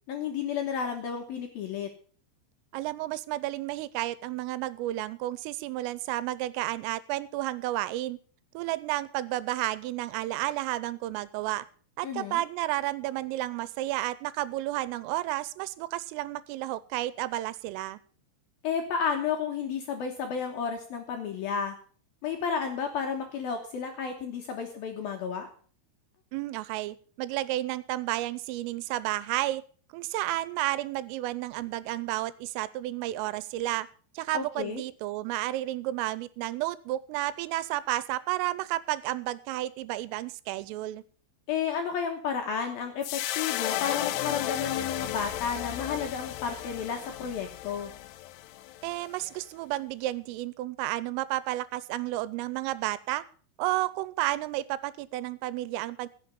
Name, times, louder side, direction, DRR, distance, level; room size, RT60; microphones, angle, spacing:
voice 1, 0.1-1.9 12.0-12.4 18.6-21.8 22.2-25.5 34.3-34.8 41.5-47.9, left 6 dB, 70° left, 3 dB, 2.4 m, -32 dB
voice 2, 2.7-8.2 8.5-11.6 12.0-18.0 26.3-29.6 29.9-33.9 34.2-41.0 48.8-53.2 53.6-56.1, right 16 dB, 85° right, 17 dB, 3.3 m, -32 dB
sound 1, 43.0-49.4, left 14 dB, 90° left, 2.4 m, -34 dB
16.0 x 7.2 x 6.8 m, 0.43 s
omnidirectional pair, 5.8 m